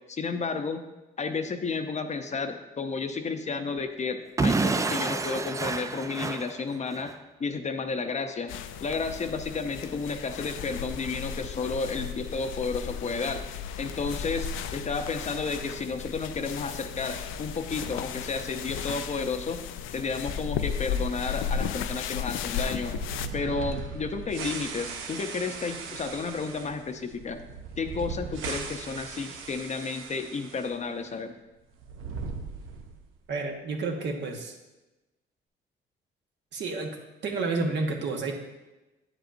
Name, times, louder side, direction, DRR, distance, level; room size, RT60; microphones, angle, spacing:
voice 1, 0.1-0.8 1.2-7.1 7.4-8.5 8.8-13.5 13.8-19.6 19.9-22.9 23.3-27.4 27.8-31.3, left 4 dB, 35° left, 7 dB, 0.6 m, -32 dB
Explosion / Shatter, 4.4-7.1, right 3 dB, 15° right, 0.3 m, -28 dB
sound 1, 8.5-23.3, left 7 dB, 85° left, 0.4 m, -35 dB
sound 2, 22.5-30.7 31.0-31.1 31.7-33.1, right 5 dB, 85° right, 0.8 m, -38 dB
voice 2, 33.3-34.5 36.5-37.0 37.2-38.3, right 3 dB, 65° right, 2 dB, 1.2 m, -30 dB
9.0 x 7.8 x 2.6 m, 1.1 s
cardioid pair, 90°, 20 cm